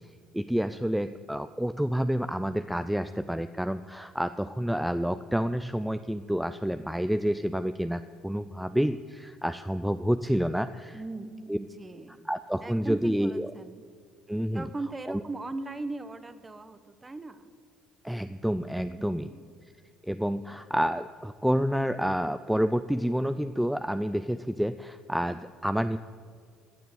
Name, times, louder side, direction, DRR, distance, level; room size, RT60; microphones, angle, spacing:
voice 1, 0.3-11.0 11.5-11.6 12.3-13.5 14.3-14.7 15.1-15.2 18.0-19.3 20.0-26.0, equal, 5° right, 11 dB, 0.5 m, -29 dB
voice 2, 10.9-12.3 12.6-13.8 14.5-17.5 19.0-19.4, right 2 dB, 20° right, 12 dB, 1.1 m, -39 dB
14.0 x 6.9 x 8.1 m, 2.1 s
hypercardioid pair, 70°, 0 cm